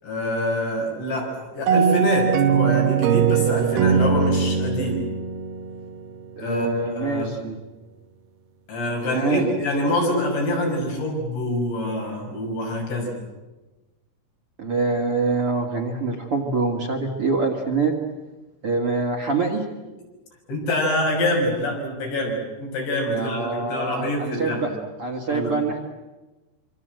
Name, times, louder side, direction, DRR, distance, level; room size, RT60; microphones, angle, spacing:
voice 1, 0.0-5.0 6.4-7.3 8.7-13.2 20.5-24.7 25.3-25.6, left 1 dB, 80° left, 0 dB, 8.5 m, -25 dB
sound 1, 1.7-6.3, right 7 dB, 70° right, 3.0 m, -21 dB
voice 2, 6.4-7.6 9.1-9.6 14.6-17.9 18.6-19.6 23.1-24.7 25.0-25.8, right 4 dB, 40° right, 1 dB, 2.3 m, -25 dB
26.0 x 25.5 x 7.8 m, 1.1 s
omnidirectional pair, 4.9 m